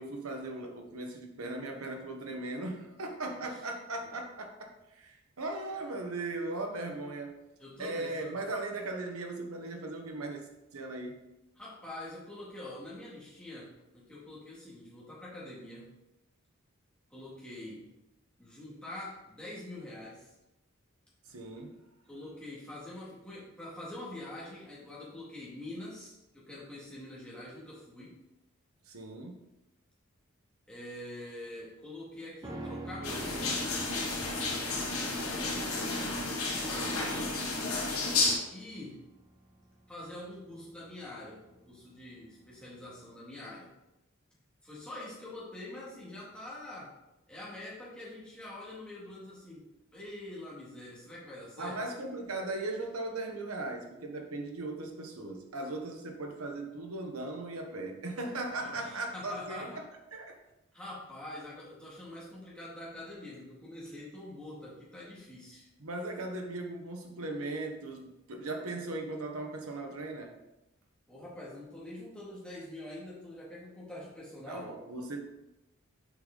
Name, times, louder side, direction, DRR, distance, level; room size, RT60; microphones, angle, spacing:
voice 1, 0.0-7.4 7.8-11.2 21.3-21.8 28.9-29.4 36.6-37.4 51.6-59.8 60.1-60.4 65.8-70.3 74.5-75.2, right 2 dB, 90° right, 3 dB, 1.1 m, -38 dB
voice 2, 7.6-8.4 11.6-15.9 17.1-17.9 18.4-20.3 22.1-28.2 30.7-33.7 34.4-36.1 38.5-39.1 39.9-43.7 44.6-46.9 47.3-51.8 58.5-59.8 60.7-65.7 71.1-74.7, left 1 dB, 5° left, -8 dB, 2.0 m, -45 dB
sound 1, 32.4-41.8 42.1-42.2, right 2 dB, 15° right, 0.8 m, -48 dB
sound 2, 33.0-38.3, left 3 dB, 90° left, 1.7 m, -32 dB
6.8 x 5.1 x 3.9 m, 0.95 s
head